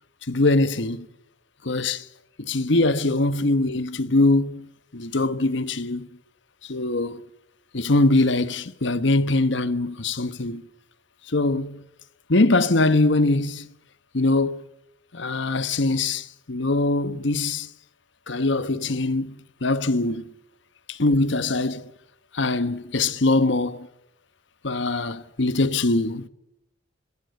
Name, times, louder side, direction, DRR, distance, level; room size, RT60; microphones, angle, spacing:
voice 1, 0.3-1.1 1.6-2.1 2.4-4.7 4.9-6.1 6.6-7.3 7.7-10.6 11.3-11.8 12.3-13.7 14.1-14.7 15.1-17.7 18.3-19.3 19.6-20.2 20.9-21.9 22.3-23.9 24.6-26.3, left 2 dB, 60° left, 1.1 m, -22 dB
26.0 x 22.0 x 8.0 m
head